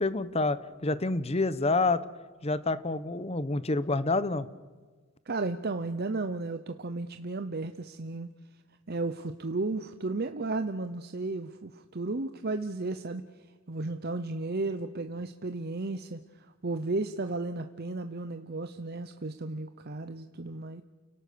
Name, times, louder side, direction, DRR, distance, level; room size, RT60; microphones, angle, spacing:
voice 1, 0.0-2.0 2.4-4.5, left 3 dB, 30° left, 15 dB, 0.9 m, -28 dB
voice 2, 5.3-8.3 8.9-13.2 13.7-20.8, right 3 dB, 50° right, 8 dB, 0.8 m, -34 dB
29.5 x 18.0 x 6.9 m, 1.4 s
head